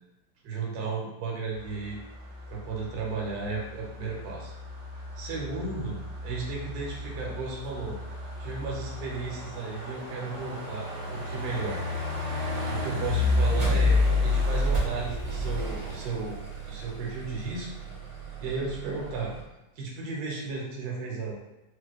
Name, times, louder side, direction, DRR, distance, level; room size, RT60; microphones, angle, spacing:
voice 1, 0.4-2.0 2.5-4.5 5.2-8.0 8.4-11.8 12.7-16.4 16.6-17.7 18.4-19.3 19.8-21.3, right 4 dB, 70° right, -3 dB, 1.2 m, -34 dB
sound 1, 1.5-19.4, left 2 dB, 85° right, 1.6 m, -31 dB
4.2 x 2.1 x 2.3 m, 0.99 s
omnidirectional pair, 1.8 m